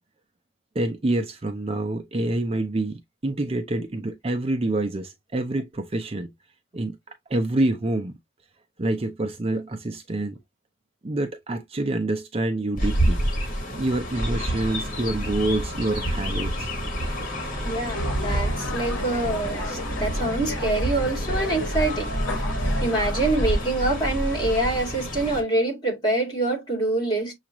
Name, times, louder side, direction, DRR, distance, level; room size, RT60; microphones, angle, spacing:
voice 1, 0.8-6.3 6.7-7.0 7.3-8.1 8.8-10.4 11.0-13.2 13.7-16.7, right 2 dB, 30° right, 0.5 m, -27 dB
Chirp tweet, 12.8-25.4, equal, 40° left, 1.7 m, -28 dB
voice 2, 17.6-22.1 22.8-27.3, right 2 dB, 20° left, 2.7 m, -25 dB
sound 1, 17.9-23.6, left 2 dB, 65° left, 1.2 m, -33 dB
6.9 x 2.4 x 2.9 m
head